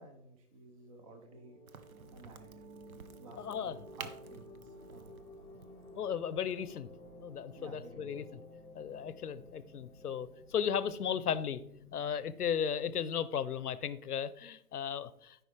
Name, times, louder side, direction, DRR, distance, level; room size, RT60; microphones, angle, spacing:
voice 1, 0.0-1.6 2.1-2.5 3.2-5.2 7.6-8.3, right 2 dB, 25° right, 6 dB, 0.5 m, -53 dB
sound 1, 0.9-11.1, left 1 dB, 5° left, 0.9 m, -55 dB
Crack, 1.7-7.1, right 6 dB, 65° right, 0.8 m, -52 dB
sound 2, 1.9-12.1, equal, 85° right, 3.7 m, -58 dB
voice 2, 3.4-3.8 6.0-6.9 7.2-8.4 8.7-11.6 11.9-15.4, left 8 dB, 75° left, 15 dB, 0.7 m, -35 dB
13.5 x 5.2 x 3.2 m, 0.77 s
figure-of-eight pair, 135°, 45 cm